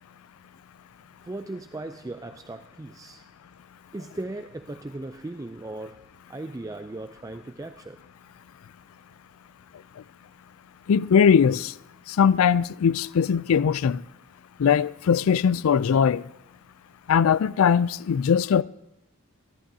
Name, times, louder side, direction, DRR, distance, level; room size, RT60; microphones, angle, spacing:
voice 1, 1.2-3.2 3.9-8.0, right 2 dB, 15° right, 0.3 m, -37 dB
voice 2, 10.9-11.7 12.1-14.0 14.6-16.2 17.1-18.6, left 7 dB, 70° left, 0.4 m, -20 dB
26.0 x 11.5 x 2.7 m
head